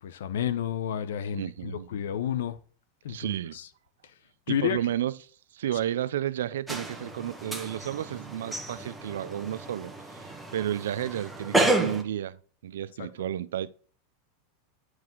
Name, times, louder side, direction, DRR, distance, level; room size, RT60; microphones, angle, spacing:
voice 1, 0.0-2.6 3.0-3.7 4.5-4.8 13.0-13.1, left 9 dB, 85° left, 0.8 m, -31 dB
voice 2, 1.3-1.9 3.1-3.6 4.5-5.2 5.5-13.7, right 11 dB, 85° right, 0.5 m, -32 dB
sound 1, 6.7-12.0, right 2 dB, 5° right, 1.3 m, -31 dB
9.4 x 4.9 x 3.8 m
supercardioid pair, 130°, 0 cm